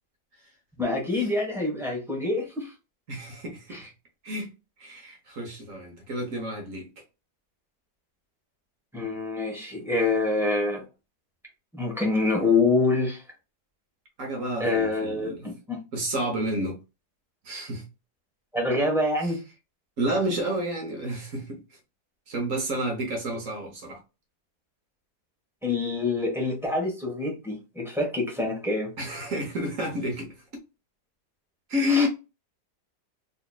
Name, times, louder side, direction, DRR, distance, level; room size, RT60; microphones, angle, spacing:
voice 1, 0.8-2.7 3.7-3.8 8.9-10.8 11.7-13.2 14.6-15.8 18.5-19.4 25.6-28.9 31.9-32.1, left 3 dB, ahead, 1.0 m, -26 dB
voice 2, 3.1-3.8 4.2-4.5 4.8-6.9 14.2-15.5 15.9-16.8 17.4-17.8 19.2-19.3 20.0-21.6 22.3-24.0 29.0-30.3 31.7-32.1, equal, 55° right, 1.3 m, -30 dB
4.0 x 2.8 x 2.3 m
omnidirectional pair, 1.8 m